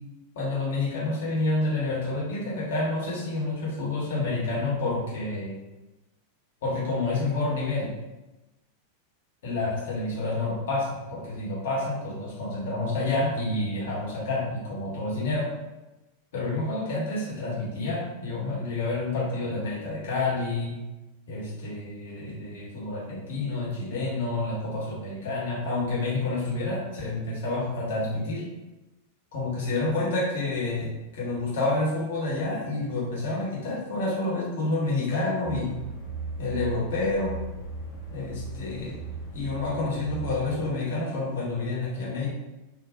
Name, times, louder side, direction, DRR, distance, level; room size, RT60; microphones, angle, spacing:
voice 1, 0.3-5.6 6.6-7.9 9.4-15.5 16.3-20.7 21.3-28.4 29.3-35.7 36.4-37.3 38.1-39.0 39.3-42.3, left 2 dB, 55° left, -5 dB, 1.2 m, -29 dB
sound 1, 35.4-40.5, right 3 dB, ahead, 1.0 m, -37 dB
3.7 x 2.4 x 2.6 m, 1.0 s
figure-of-eight pair, 90°, 0 cm